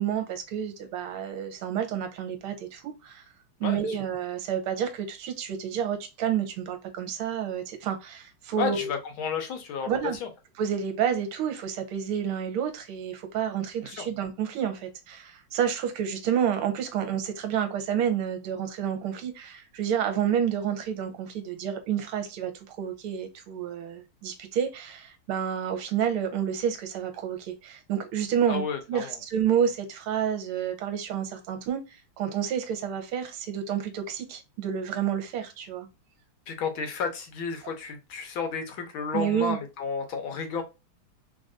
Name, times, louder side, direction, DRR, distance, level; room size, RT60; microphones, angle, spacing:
voice 1, 0.0-3.2 3.6-8.9 9.8-10.2 10.6-35.9 39.1-39.6, right 8 dB, 75° right, 1.7 m, -29 dB
voice 2, 3.6-3.9 8.6-10.3 13.9-14.1 28.5-29.2 36.5-40.6, left 5 dB, 70° left, 1.6 m, -32 dB
3.9 x 2.6 x 2.3 m
omnidirectional pair, 2.4 m